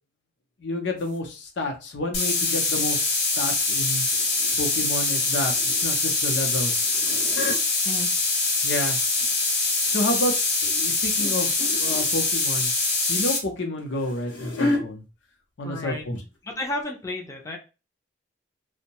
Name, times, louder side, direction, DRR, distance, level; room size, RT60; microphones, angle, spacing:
voice 1, 0.6-4.1 4.6-5.5 5.8-7.0 8.6-9.0 9.9-10.3 10.6-11.5 11.8-12.7 13.1-15.0 15.6-16.2, left 1 dB, 70° left, 3 dB, 0.6 m, -29 dB
sound 1, 1.0-1.2 4.1-4.6 4.9-6.1 6.7-7.6 8.6-9.4 9.9-10.2 11.2-11.3 11.6-12.1 13.6-14.8 15.7-15.9 16.2-16.3 16.8-16.9, left 2 dB, 85° left, 0.9 m, -32 dB
sound 2, 2.1-13.4, left 3 dB, 55° left, 1.1 m, -24 dB
voice 2, 15.6-16.1 16.4-17.6, left 2 dB, 15° left, 1 dB, 0.5 m, -32 dB
2.6 x 2.1 x 2.8 m, 0.31 s
head